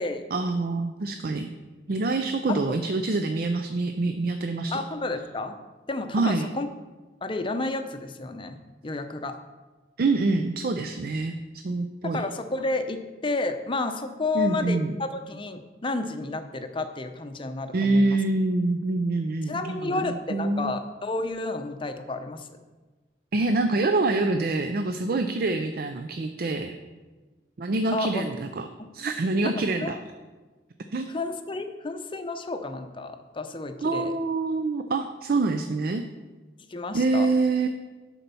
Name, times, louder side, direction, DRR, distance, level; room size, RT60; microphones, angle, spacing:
voice 1, 0.3-1.5 1.9-4.8 6.1-6.5 10.0-11.4 11.6-12.2 14.3-14.9 17.7-20.8 23.3-26.8 27.6-28.7 28.9-30.0 30.9-31.1 33.8-36.0 36.9-37.7, right 3 dB, 50° right, 7 dB, 0.5 m, -26 dB
voice 2, 4.7-5.6 5.9-6.7 7.2-9.4 12.0-18.2 19.5-22.5 27.9-28.2 29.4-30.0 31.1-34.1 36.7-37.3, left 2 dB, 30° left, 8 dB, 0.6 m, -31 dB
11.0 x 4.5 x 6.8 m, 1.3 s
head